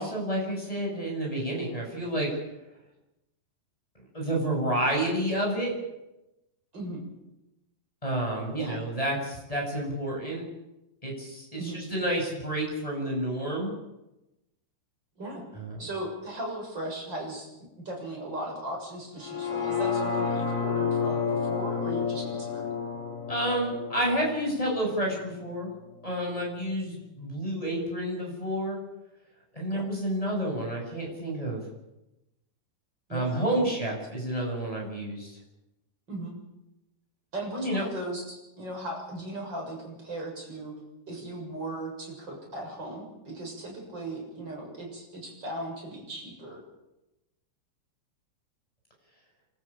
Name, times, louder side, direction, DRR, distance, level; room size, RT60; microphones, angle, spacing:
voice 1, 0.0-2.3 4.1-5.7 8.0-10.4 11.0-13.7 15.6-15.8 23.3-25.7 26.0-28.8 29.5-31.6 33.1-35.4 37.5-37.8, right 1 dB, 5° left, -1 dB, 7.7 m, -30 dB
voice 2, 6.7-7.0 8.6-8.8 11.6-11.8 15.2-15.5 15.8-22.7 29.7-29.9 33.1-33.7 36.1-36.3 37.3-40.7 41.1-46.6, right 1 dB, 25° right, 0 dB, 7.5 m, -37 dB
sound 1, 19.2-25.3 25.7-25.8, left 6 dB, 60° left, 5.5 m, -30 dB
28.5 x 13.5 x 8.9 m, 0.96 s
omnidirectional pair, 4.9 m